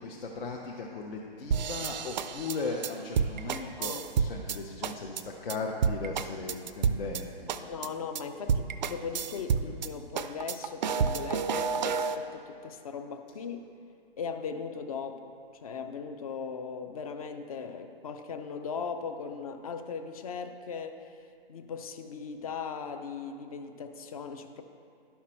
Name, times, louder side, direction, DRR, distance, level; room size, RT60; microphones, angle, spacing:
voice 1, 0.0-7.9, left 3 dB, 65° left, -1 dB, 0.9 m, -37 dB
sound 1, 1.5-4.6 4.8-5.2 5.5-5.6 5.8-7.2 7.5-7.9 8.2-8.3 8.5-9.9 10.2-12.2, right 6 dB, 50° right, 0.4 m, -29 dB
voice 2, 3.6-4.0 7.5-13.7 14.2-15.3 15.6-21.1 21.5-24.6, left 6 dB, 40° left, 7 dB, 0.6 m, -38 dB
11.0 x 5.8 x 4.4 m, 2.5 s
hypercardioid pair, 150°, 30 cm